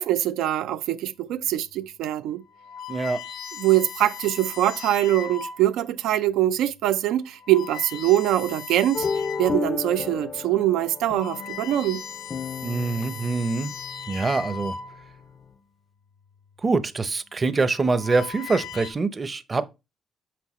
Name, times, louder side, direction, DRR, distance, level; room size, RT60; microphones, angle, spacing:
voice 1, 0.0-2.4 3.6-9.1 9.4-12.0, right 13 dB, 90° right, 0.4 m, -23 dB
sound 1, 1.5-1.8 2.4-5.8 6.5-6.7 7.3-9.7 10.2-10.3 10.8-15.3 16.3-16.7 17.6-18.9, left 7 dB, 80° left, 0.9 m, -38 dB
voice 2, 2.9-3.2 12.6-13.7 14.1-14.7 16.6-19.7, right 3 dB, 30° right, 0.6 m, -24 dB
sound 2, 8.9-15.5, left 5 dB, 35° left, 0.4 m, -33 dB
6.1 x 5.4 x 3.0 m
cardioid pair, 90°, 0 cm